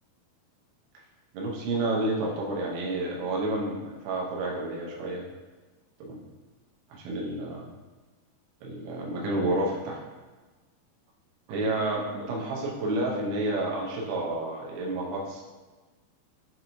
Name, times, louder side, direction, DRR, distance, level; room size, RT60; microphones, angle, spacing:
voice 1, 1.3-5.2 6.0-6.2 6.9-7.7 8.6-10.0 11.5-15.4, right 2 dB, 85° right, -2 dB, 2.6 m, -30 dB
6.4 x 2.5 x 2.9 m, 1.3 s
omnidirectional pair, 4.4 m